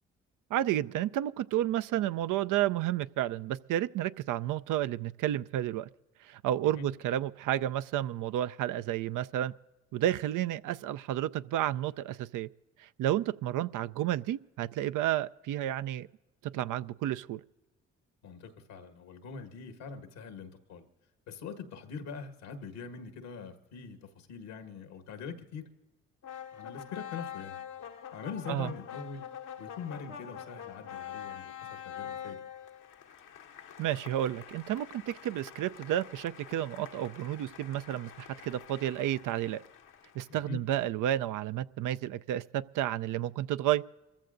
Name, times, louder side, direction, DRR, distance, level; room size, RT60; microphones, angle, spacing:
voice 1, 0.5-5.9 6.2-9.5 9.9-12.5 12.8-16.1 16.5-17.4 28.5-28.7 33.8-39.6 40.1-43.8, right 12 dB, 65° right, 0.5 m, -31 dB
voice 2, 18.2-20.8 21.3-25.7 26.5-27.6 28.1-29.3 29.6-32.4 40.3-40.6, left 6 dB, 80° left, 1.6 m, -43 dB
sound 1, 26.2-40.4, left 9 dB, 65° left, 1.0 m, -45 dB
28.0 x 14.5 x 2.6 m
hypercardioid pair, 40°, 34 cm